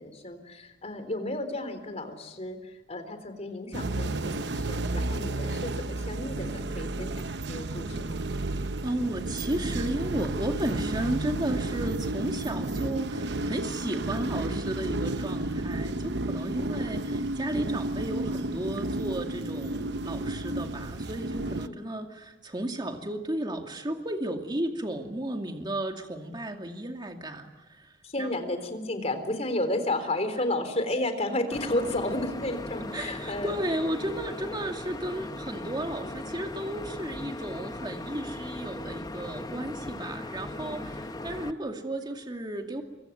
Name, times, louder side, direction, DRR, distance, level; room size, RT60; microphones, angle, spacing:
voice 1, 0.0-8.2 21.3-21.8 28.0-33.5 40.5-41.3, left 1 dB, 40° left, 8 dB, 3.8 m, -32 dB
sound 1, 3.7-21.7, right 2 dB, 75° right, 0.9 m, -32 dB
voice 2, 8.5-28.3 32.9-42.8, right 1 dB, 25° right, 3 dB, 2.4 m, -34 dB
sound 2, 31.5-41.5, left 1 dB, 20° left, 0.9 m, -38 dB
25.0 x 24.5 x 9.5 m, 1.1 s
head